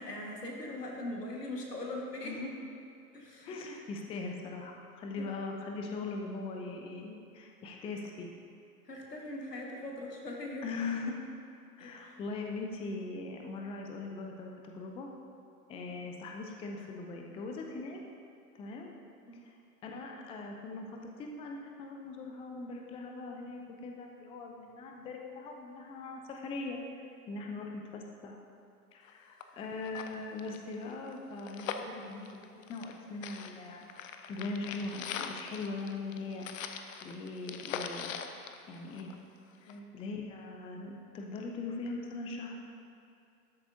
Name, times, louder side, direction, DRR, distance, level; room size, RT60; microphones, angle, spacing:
voice 1, 0.0-2.4 3.1-3.5 5.1-5.3 8.8-10.7 11.8-12.2 19.3-19.5 39.7-39.8, left 1 dB, 85° left, -1 dB, 1.7 m, -41 dB
voice 2, 3.4-8.3 10.4-11.2 11.8-15.1 15.7-18.0 18.5-18.9 19.4-19.5 19.8-28.4 28.9-33.9 34.3-38.1 38.7-39.1 39.6-42.6, left 3 dB, 15° left, 2 dB, 0.5 m, -41 dB
sound 1, 29.1-29.2 29.4-29.5 29.8-33.0 33.2-39.3 39.7-39.8, left 7 dB, 60° left, 0.7 m, -41 dB
12.5 x 7.6 x 2.7 m, 2.6 s
figure-of-eight pair, 95°, 47 cm